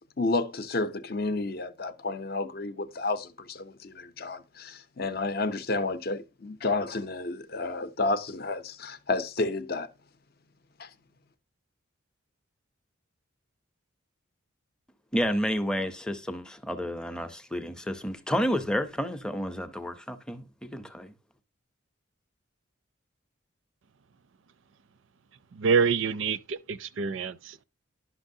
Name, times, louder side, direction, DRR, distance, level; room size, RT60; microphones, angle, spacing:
voice 1, 0.0-9.9 10.8-10.9, left 3 dB, 50° left, 0.6 m, -31 dB
voice 2, 15.1-21.1, equal, 5° left, 0.6 m, -30 dB
voice 3, 25.5-27.6, right 5 dB, 70° right, 0.5 m, -27 dB
11.5 x 6.0 x 2.7 m
head